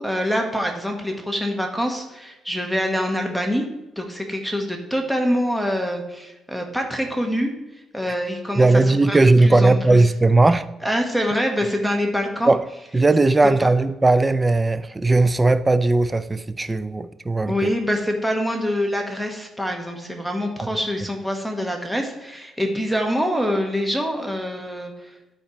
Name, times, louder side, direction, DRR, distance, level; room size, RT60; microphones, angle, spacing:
voice 1, 0.0-3.6 4.0-7.5 7.9-10.0 10.8-12.5 13.6-13.7 17.5-25.3, equal, ahead, 1.3 m, -25 dB
voice 2, 8.6-10.6 12.5-12.6 12.9-17.7, right 2 dB, 20° right, 0.4 m, -17 dB
11.5 x 4.2 x 3.0 m
cardioid pair, 90°, 0 cm